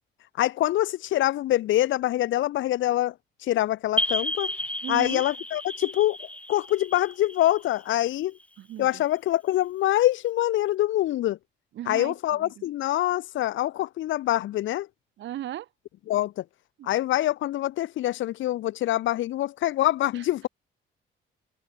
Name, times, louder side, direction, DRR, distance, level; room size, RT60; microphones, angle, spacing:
voice 1, 0.4-3.1 3.4-4.5 4.9-8.3 8.8-11.4 11.9-14.9 16.1-16.4 16.8-20.5, left 14 dB, 75° left, 0.8 m, -25 dB
sound 1, 4.0-8.4, left 1 dB, 5° left, 1.0 m, -32 dB
voice 2, 4.8-5.2 8.6-9.0 11.8-12.1 12.4-12.5 15.2-15.7 16.8-16.9 20.1-20.5, right 12 dB, 70° right, 0.8 m, -36 dB
cardioid pair, 90°, 20 cm